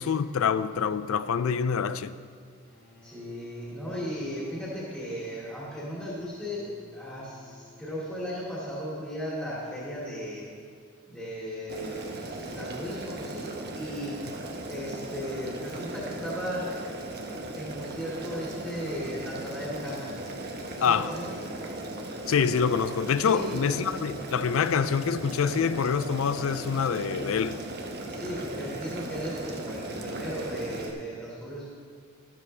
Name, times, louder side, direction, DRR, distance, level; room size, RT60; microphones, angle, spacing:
voice 1, 0.0-2.1 20.8-21.1 22.3-27.6, left 6 dB, 80° left, 0.4 m, -26 dB
Bowed string instrument, 2.7-8.8, left 1 dB, 60° left, 1.7 m, -56 dB
voice 2, 3.0-10.4 11.1-14.2 14.6-16.8 17.5-20.1 20.7-21.4 23.3-23.7 28.0-31.7, equal, 5° left, 2.3 m, -36 dB
Boiling, 11.7-30.9, right 2 dB, 50° right, 1.1 m, -37 dB
12.5 x 12.0 x 3.3 m
head